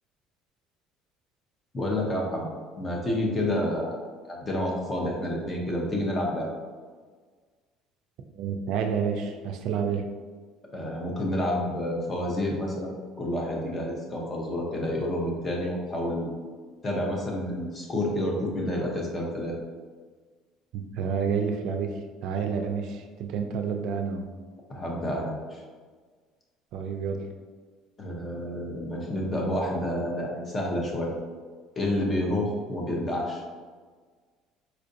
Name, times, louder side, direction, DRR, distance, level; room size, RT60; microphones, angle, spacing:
voice 1, 1.7-2.5 2.8-4.0 4.3-6.5 10.7-16.3 16.8-19.5 24.7-25.6 28.0-31.1 31.8-33.4, left 1 dB, 25° left, -1 dB, 0.7 m, -29 dB
voice 2, 8.3-10.0 20.7-24.3 26.7-27.3, right 6 dB, 65° right, 5 dB, 0.3 m, -29 dB
4.3 x 2.5 x 2.6 m, 1.5 s
cardioid pair, 125°, 0 cm